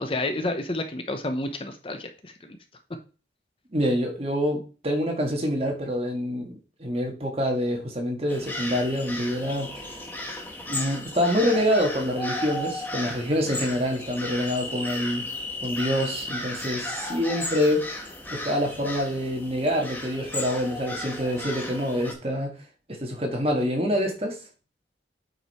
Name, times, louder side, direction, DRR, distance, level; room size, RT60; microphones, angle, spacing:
voice 1, 0.0-2.6, left 2 dB, 30° left, 0.8 m, -30 dB
voice 2, 3.7-6.5 6.8-10.0 10.7-15.3 15.6-17.9 18.3-22.5 22.9-24.4, equal, 35° right, 1.9 m, -26 dB
sound 1, 8.3-22.1, left 1 dB, 10° left, 1.4 m, -35 dB
8.5 x 5.2 x 4.3 m
head